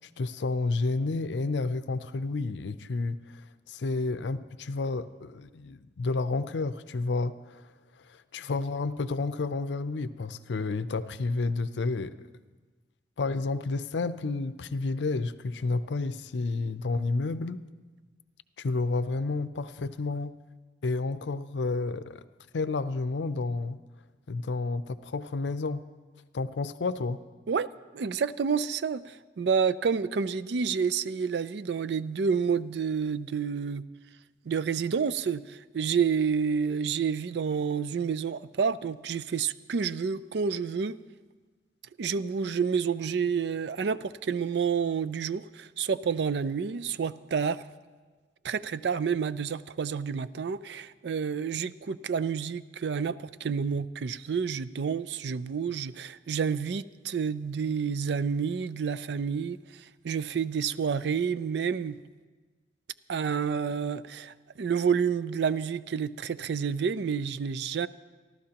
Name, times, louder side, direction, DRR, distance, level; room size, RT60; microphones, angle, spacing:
voice 1, 0.2-3.4 3.7-7.6 8.1-12.3 13.2-17.7 18.6-20.3 20.8-22.2 22.5-23.8 24.3-25.8 26.3-27.2, left 3 dB, 75° left, 13 dB, 0.5 m, -30 dB
voice 2, 27.9-33.8 34.5-41.0 42.0-47.6 48.4-62.0 63.1-67.9, right 6 dB, 65° right, 15 dB, 0.4 m, -29 dB
28.5 x 12.5 x 2.9 m, 1.4 s
head